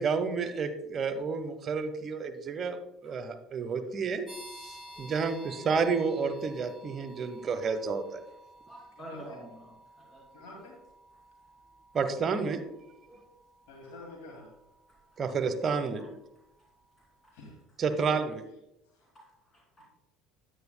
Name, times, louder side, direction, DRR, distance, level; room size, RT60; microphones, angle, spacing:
voice 1, 0.0-2.8 3.0-4.3 4.6-8.2 11.9-12.6 15.2-16.0 17.8-18.4, right 5 dB, 40° right, 8 dB, 0.9 m, -30 dB
sound 1, 4.3-16.8, equal, 5° right, 2.7 m, -53 dB
voice 2, 4.9-5.5 7.4-7.5 8.7-10.5 13.1-13.2 14.9-15.0 16.0-16.1 17.2-17.3 19.0-19.9, equal, 25° left, -2 dB, 2.7 m, -50 dB
voice 3, 8.9-9.4 10.3-10.8 13.7-14.5 17.3-17.6 18.0-18.2 18.9-19.1, left 2 dB, 75° left, -1 dB, 2.3 m, -48 dB
9.5 x 9.0 x 2.2 m, 0.86 s
hypercardioid pair, 70°, 0 cm